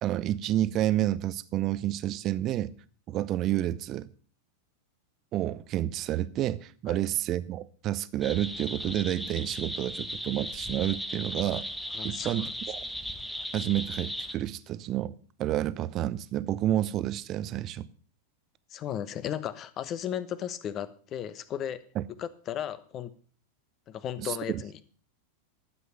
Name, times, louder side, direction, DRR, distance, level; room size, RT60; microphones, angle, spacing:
voice 1, 0.0-2.7 3.1-4.1 5.3-11.6 12.0-12.8 13.5-15.1 15.4-17.9 21.9-22.0 24.2-24.6, right 13 dB, 35° right, 0.7 m, -29 dB
sound 1, 8.2-14.3, equal, ahead, 1.0 m, -37 dB
voice 2, 11.9-12.3 18.7-21.8 22.2-23.1 23.9-24.8, left 10 dB, 30° left, 1.0 m, -35 dB
12.5 x 7.9 x 6.7 m
figure-of-eight pair, 90°, 0 cm